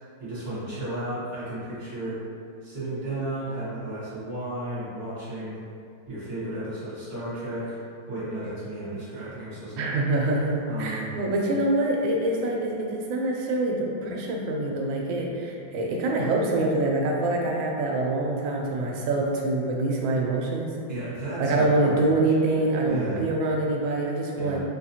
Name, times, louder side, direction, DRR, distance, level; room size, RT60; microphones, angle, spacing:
voice 1, 0.2-2.2 2.6-5.6 6.1-7.8 8.1-10.0 10.7-11.1 20.9-22.1 22.9-23.3 24.4-24.6, right 1 dB, 35° right, -12 dB, 1.2 m, -33 dB
voice 2, 9.8-20.7 21.4-24.6, right 2 dB, 80° right, -1 dB, 1.3 m, -25 dB
4.2 x 2.4 x 2.7 m, 2.4 s
omnidirectional pair, 2.1 m